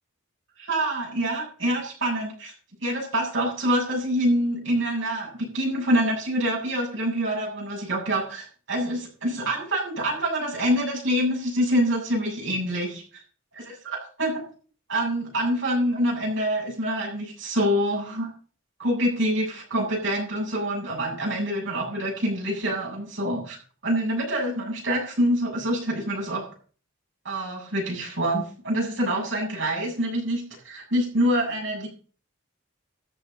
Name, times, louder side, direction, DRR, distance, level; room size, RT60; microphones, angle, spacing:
voice 1, 0.6-2.5 2.8-13.2 13.8-14.4 14.9-18.3 18.8-23.6 23.8-26.5 27.2-31.9, equal, 65° right, -1 dB, 7.8 m, -26 dB
14.0 x 7.5 x 6.8 m, 0.42 s
head